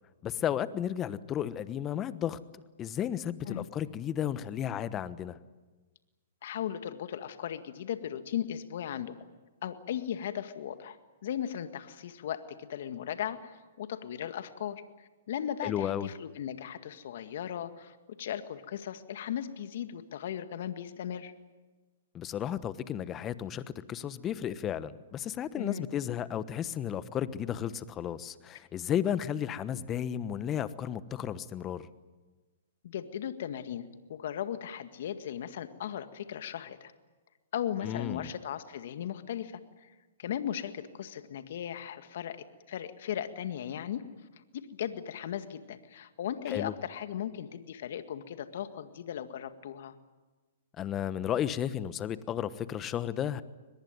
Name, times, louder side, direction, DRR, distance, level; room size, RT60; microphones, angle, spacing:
voice 1, 0.2-2.4 2.8-5.4 15.6-16.1 22.1-23.6 23.9-31.9 37.8-38.3 46.5-46.7 50.8-53.4, left 10 dB, 25° left, 15 dB, 1.1 m, -33 dB
voice 2, 6.4-9.1 9.6-21.3 25.6-25.9 32.8-36.9 37.5-39.9 40.2-44.0 44.5-50.0, left 10 dB, 65° left, 10 dB, 1.9 m, -37 dB
23.0 x 21.0 x 9.5 m, 1.3 s
hypercardioid pair, 125°, 0 cm